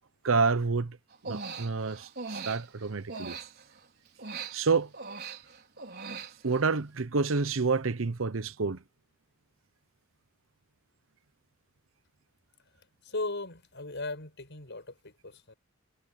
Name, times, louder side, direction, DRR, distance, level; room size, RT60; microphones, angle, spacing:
voice 1, 0.2-1.0 1.2-3.4 4.5-4.9 6.4-8.8, right 4 dB, 70° right, 0.8 m, -28 dB
Human voice, 1.1-3.8 4.2-6.7, right 4 dB, 55° right, 4.8 m, -41 dB
voice 2, 13.0-15.5, left 2 dB, 60° left, 7.4 m, -37 dB
head